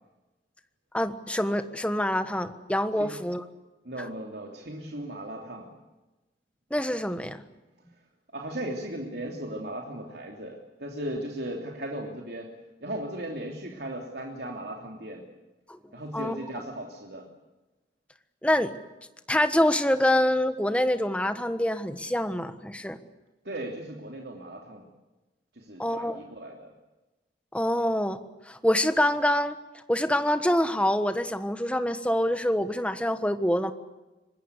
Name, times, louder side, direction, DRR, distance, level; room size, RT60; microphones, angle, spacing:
voice 1, 0.9-3.4 6.7-7.4 15.7-15.8 16.1-16.4 18.4-18.7 19.3-23.0 25.8-26.2 27.5-28.2 28.4-33.7, left 1 dB, 5° left, 10 dB, 1.3 m, -26 dB
voice 2, 3.8-5.7 8.3-12.5 12.8-15.2 15.9-17.3 23.4-24.9 25.5-26.7, right 1 dB, 75° right, 1 dB, 3.1 m, -37 dB
25.5 x 21.0 x 8.2 m, 1.1 s
head